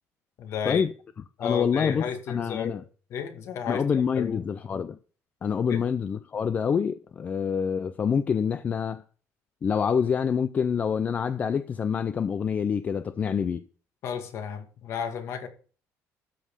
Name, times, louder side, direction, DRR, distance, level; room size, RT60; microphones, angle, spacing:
voice 1, 0.4-0.8 1.4-2.8 3.1-3.8 4.2-4.5 5.7-5.8 14.0-15.5, left 7 dB, 55° left, 2.0 m, -32 dB
voice 2, 1.4-2.8 3.6-5.0 5.4-9.0 9.6-13.6, left 7 dB, 30° left, 0.5 m, -26 dB
13.0 x 5.5 x 6.5 m
cardioid pair, 165°, 6 cm